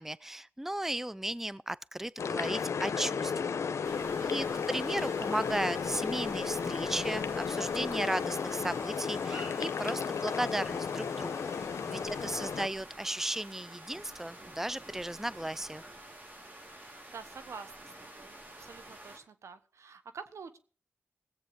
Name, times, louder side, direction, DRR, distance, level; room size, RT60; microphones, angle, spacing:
voice 1, 0.0-4.0 4.3-11.5 11.9-15.9, right 1 dB, 5° right, 0.5 m, -35 dB
sound 1, 2.2-12.7, left 6 dB, 80° left, 0.8 m, -34 dB
sound 2, 3.8-19.2, right 1 dB, 40° right, 4.9 m, -49 dB
voice 2, 4.2-4.8 11.9-12.6 16.8-20.6, right 5 dB, 80° right, 1.1 m, -49 dB
17.0 x 8.2 x 5.0 m
cardioid pair, 40°, 5 cm